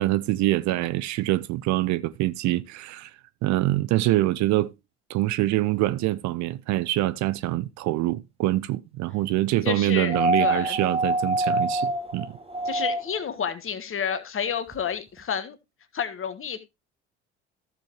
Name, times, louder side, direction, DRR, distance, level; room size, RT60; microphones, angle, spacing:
voice 1, 0.0-3.1 3.4-4.7 5.1-12.3, right 16 dB, 50° right, 0.6 m, -25 dB
voice 2, 9.6-10.8 12.6-15.6 15.9-16.6, left 7 dB, 35° left, 1.5 m, -30 dB
sound 1, 10.0-13.3 14.7-14.8, right 1 dB, 15° right, 2.0 m, -26 dB
14.0 x 6.9 x 3.0 m
figure-of-eight pair, 55°, 35 cm